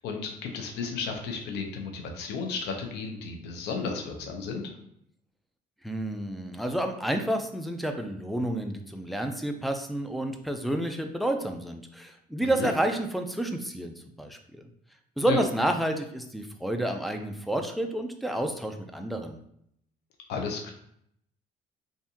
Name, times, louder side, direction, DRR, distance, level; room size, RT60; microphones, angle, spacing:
voice 1, 0.0-4.7 12.4-12.7 15.3-15.4 20.3-20.7, left 5 dB, 80° left, 3 dB, 0.7 m, -33 dB
voice 2, 5.8-14.6 15.2-19.4, right 1 dB, ahead, 4 dB, 0.3 m, -30 dB
3.5 x 2.6 x 2.7 m, 0.71 s
cardioid pair, 110°, 17 cm